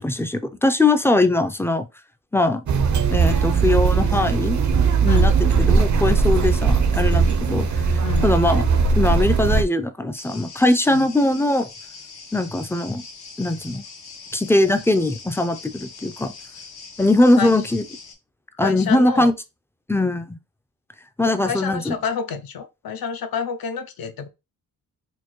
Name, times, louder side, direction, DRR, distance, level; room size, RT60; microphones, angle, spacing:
voice 1, 0.0-1.9 2.3-2.6 3.1-4.6 5.0-7.9 8.2-8.6 8.9-11.7 12.3-13.0 13.4-13.8 14.3-16.3 17.0-17.8 18.6-19.3 19.9-20.4 21.2-21.9, left 2 dB, 5° left, 0.3 m, -20 dB
sound 1, 2.7-9.6, right 5 dB, 50° right, 0.5 m, -19 dB
voice 2, 5.1-5.4 7.1-7.4 8.0-8.5 10.9-11.1 17.4-17.6 18.6-19.3 21.3-24.3, left 6 dB, 75° left, 0.6 m, -29 dB
sound 2, 10.1-18.1, left 4 dB, 90° left, 1.0 m, -42 dB
4.4 x 2.2 x 3.0 m
wide cardioid pair, 95°, 36 cm